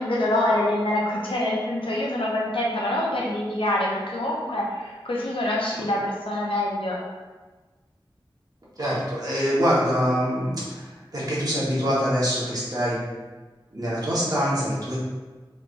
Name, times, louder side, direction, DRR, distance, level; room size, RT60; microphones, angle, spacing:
voice 1, 0.0-7.0, left 1 dB, 85° left, -4 dB, 0.7 m, -25 dB
voice 2, 8.8-10.8 11.1-13.0 13.7-15.1, equal, 45° right, -8 dB, 1.2 m, -24 dB
3.3 x 3.2 x 2.5 m, 1.3 s
wide cardioid pair, 45°, 9 cm